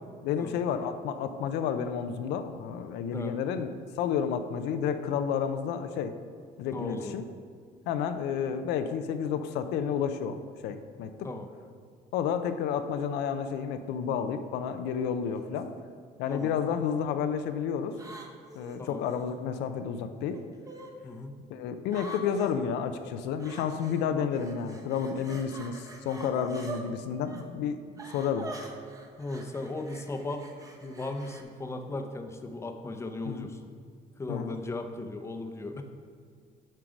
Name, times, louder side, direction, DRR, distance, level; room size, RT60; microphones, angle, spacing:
voice 1, 0.2-6.1 6.6-7.2 7.9-11.1 12.1-15.7 16.2-18.0 18.6-20.4 21.5-28.5 33.3-33.5 34.3-34.6, left 7 dB, 85° left, 8 dB, 0.5 m, -31 dB
voice 2, 6.7-7.2 11.2-11.5 16.3-16.5 18.8-19.1 21.0-21.4 29.2-30.5 30.8-33.7 34.2-35.8, left 2 dB, 15° left, 5 dB, 0.6 m, -37 dB
sound 1, 15.3-15.6 16.4-16.9 17.9-19.3 20.3-20.9 21.9-22.5 23.4-24.0 24.3-26.8 27.2-27.4 28.0-31.4, right 2 dB, 20° right, 0.9 m, -44 dB
7.5 x 4.6 x 5.1 m, 2.1 s
cardioid pair, 110°, 17 cm